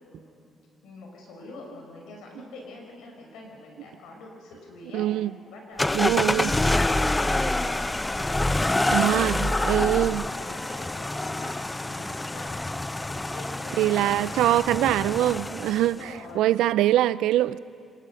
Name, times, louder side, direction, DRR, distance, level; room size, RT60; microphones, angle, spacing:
voice 1, 0.1-0.5 0.8-5.1 5.5-8.0 8.5-14.9 15.7-16.5, left 2 dB, 85° left, 5.9 m, -44 dB
voice 2, 4.9-5.3 5.9-6.5 8.9-10.2 13.8-17.6, right 13 dB, 90° right, 0.5 m, -23 dB
sound 1, 5.8-16.0, left 2 dB, 15° left, 0.6 m, -27 dB
25.0 x 21.0 x 6.3 m
cardioid pair, 90°, 0 cm